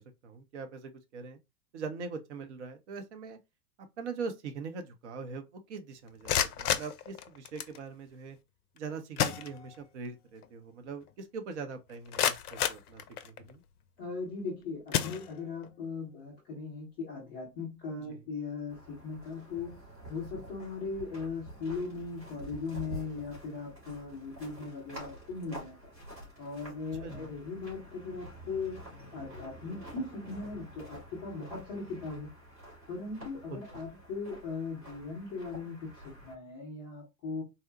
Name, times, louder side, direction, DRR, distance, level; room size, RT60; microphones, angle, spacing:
voice 1, 0.0-1.4 1.7-3.4 4.0-8.4 8.8-13.6 18.0-18.2 27.0-27.3 33.5-33.8, right 5 dB, 45° right, 0.6 m, -42 dB
sound 1, 6.1-7.8 8.8-8.9 9.2-10.1 10.4-10.5 11.1-11.2 11.7-13.6 14.2-14.4 14.9-15.7, left 9 dB, 65° left, 0.5 m, -32 dB
voice 2, 14.0-19.8 20.1-25.8 26.4-28.8 29.1-32.3 32.9-37.4, left 4 dB, 15° left, 0.4 m, -39 dB
sound 2, 18.7-36.3, right 1 dB, 85° right, 1.9 m, -48 dB
3.8 x 2.0 x 2.5 m
figure-of-eight pair, 95°, 50 cm